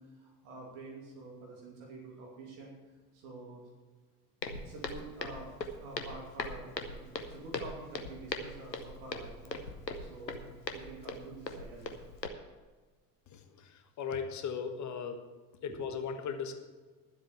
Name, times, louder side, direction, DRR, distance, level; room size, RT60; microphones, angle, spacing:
voice 1, 0.0-2.7 3.1-3.7 4.6-5.5 5.8-9.6 10.0-12.0 15.7-15.9, right 2 dB, 55° right, -1 dB, 2.6 m, -48 dB
Walk footsteps, 4.4-12.3, left 3 dB, 85° left, 0.9 m, -40 dB
voice 2, 13.3-13.7 14.0-15.2 15.6-16.5, left 6 dB, 35° left, 7 dB, 1.4 m, -37 dB
12.0 x 7.9 x 6.8 m, 1.3 s
figure-of-eight pair, 65°, 49 cm